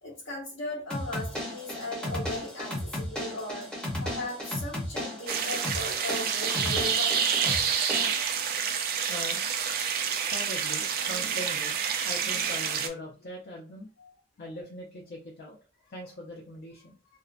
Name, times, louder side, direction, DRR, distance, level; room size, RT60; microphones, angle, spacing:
voice 1, 0.0-3.7 4.0-7.2 14.0-14.1, left 1 dB, 65° left, -8 dB, 1.0 m, -37 dB
sound 1, 0.9-8.1, left 1 dB, 5° left, 0.6 m, -35 dB
sound 2, 5.3-12.9, right 7 dB, 50° right, 0.3 m, -28 dB
voice 2, 7.7-9.4 10.1-13.9 14.4-17.0, left 1 dB, 50° left, -1 dB, 0.5 m, -42 dB
2.6 x 2.1 x 2.4 m, 0.36 s
head